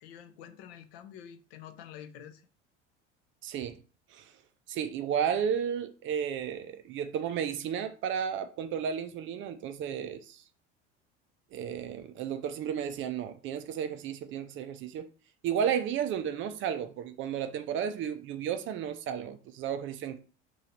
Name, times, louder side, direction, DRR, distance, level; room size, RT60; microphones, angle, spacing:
voice 1, 0.0-2.5, left 9 dB, 55° left, 0.6 m, -48 dB
voice 2, 3.4-3.8 4.1-4.3 4.7-10.4 11.5-15.1 15.4-20.2, right 8 dB, 35° right, 0.5 m, -33 dB
3.0 x 2.7 x 4.1 m
figure-of-eight pair, 75°, 36 cm